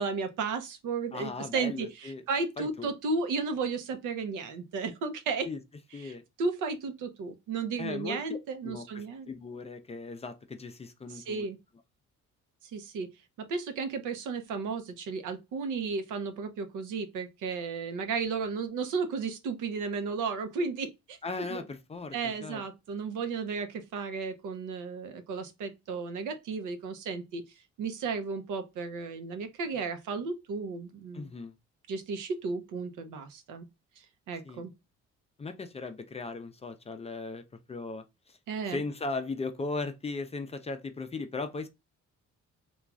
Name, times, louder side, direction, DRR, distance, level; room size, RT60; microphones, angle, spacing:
voice 1, 0.0-5.5 6.0-6.1 6.4-9.3 11.1-11.6 12.6-13.1 13.4-21.2 21.5-21.6 22.1-27.4 27.8-31.3 31.9-33.6 34.0-34.7 38.5-38.8, right 4 dB, 85° right, 0.7 m, -34 dB
voice 2, 1.1-2.2 2.6-2.9 5.4-5.6 5.9-6.2 7.8-8.4 8.6-11.5 21.2-22.6 31.1-31.5 34.4-34.6 35.4-38.4 38.7-41.7, left 3 dB, 20° left, 0.4 m, -38 dB
3.0 x 2.3 x 2.3 m
cardioid pair, 90°, 30 cm